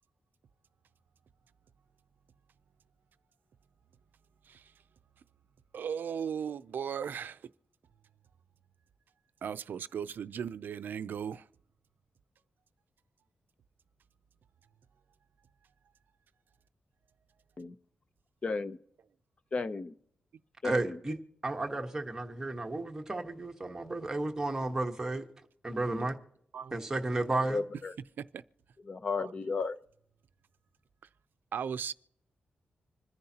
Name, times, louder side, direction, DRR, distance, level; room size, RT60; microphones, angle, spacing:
voice 1, 5.7-7.5 9.4-11.5 26.5-26.7 28.2-28.4 29.2-29.7 31.5-31.9, right 7 dB, 70° right, 0.5 m, -37 dB
voice 2, 18.4-18.8 19.5-19.9 20.6-21.0 27.5-27.9 28.9-29.8, left 4 dB, 35° left, 0.7 m, -33 dB
voice 3, 20.6-21.2 21.4-25.3 25.6-26.2 26.7-27.6, right 2 dB, 15° right, 1.2 m, -33 dB
26.0 x 10.5 x 2.9 m
wide cardioid pair, 170°, 3 cm